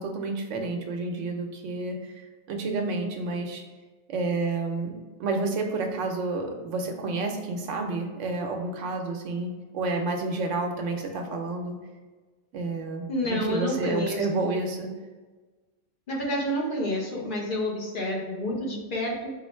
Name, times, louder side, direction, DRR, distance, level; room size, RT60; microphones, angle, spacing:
voice 1, 0.0-3.6 4.1-4.9 5.2-11.8 12.5-13.1 13.5-14.9, right 3 dB, 90° right, 3 dB, 1.0 m, -30 dB
voice 2, 13.1-14.3 16.1-19.3, equal, 50° left, -2 dB, 0.9 m, -29 dB
3.8 x 2.6 x 4.3 m, 1.3 s
omnidirectional pair, 1.2 m